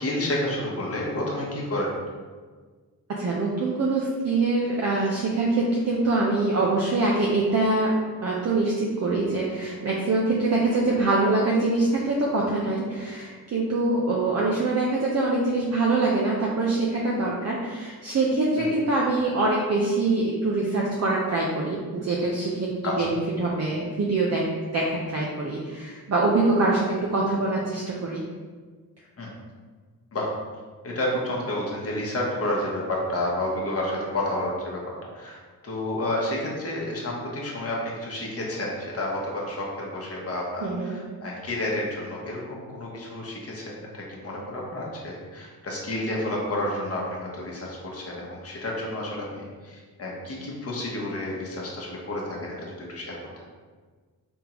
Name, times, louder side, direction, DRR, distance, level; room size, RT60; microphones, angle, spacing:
voice 1, 0.0-1.9 18.6-18.7 22.8-23.1 29.2-29.3 30.1-30.3 30.8-53.2, left 1 dB, 40° left, -3 dB, 1.0 m, -30 dB
voice 2, 3.1-7.9 8.2-22.7 23.0-28.2 40.6-41.0, right 2 dB, 45° right, -3 dB, 0.6 m, -24 dB
3.6 x 3.5 x 2.9 m, 1.5 s
wide cardioid pair, 90°, 37 cm